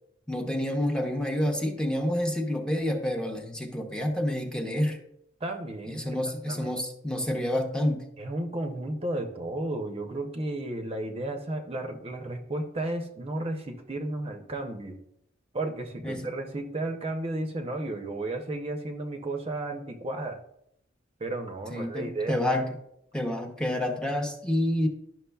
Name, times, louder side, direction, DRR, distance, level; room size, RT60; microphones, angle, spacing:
voice 1, 0.3-5.0 5.9-8.0 16.0-16.3 21.7-22.7 23.1-24.9, left 1 dB, 5° left, 3 dB, 0.8 m, -28 dB
voice 2, 5.4-6.2 6.5-6.8 8.2-15.0 15.5-20.4 21.2-22.4, right 2 dB, 30° right, 4 dB, 0.7 m, -33 dB
11.0 x 6.0 x 2.3 m, 0.75 s
head